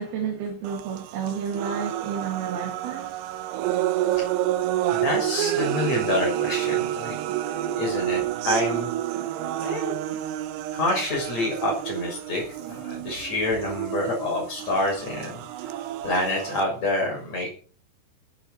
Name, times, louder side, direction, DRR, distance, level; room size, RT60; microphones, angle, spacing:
voice 1, 0.0-3.1 7.3-7.8, right 7 dB, 70° right, 3.9 m, -31 dB
sound 1, 0.6-16.6, right 13 dB, 90° right, 3.2 m, -29 dB
voice 2, 4.9-7.2 7.8-8.9 9.6-9.9 10.7-15.4 16.0-17.5, left 2 dB, 40° left, 7.4 m, -27 dB
20.5 x 10.5 x 4.6 m
omnidirectional pair, 4.6 m